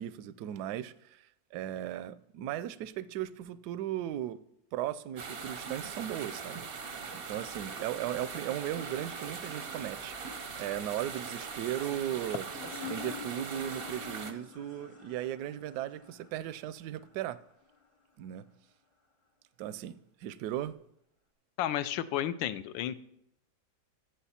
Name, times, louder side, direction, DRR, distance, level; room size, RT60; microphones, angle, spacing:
voice 1, 0.0-4.4 4.7-6.7 7.1-10.2 10.6-12.4 12.8-17.4 18.2-18.4 19.6-20.8, right 12 dB, 75° right, 1.0 m, -37 dB
sound 1, 5.2-14.3, right 5 dB, 55° right, 0.6 m, -41 dB
sound 2, 12.5-17.9, left 6 dB, 35° left, 0.5 m, -47 dB
voice 2, 21.6-23.0, left 11 dB, 80° left, 1.3 m, -32 dB
14.0 x 7.7 x 4.2 m
omnidirectional pair, 2.1 m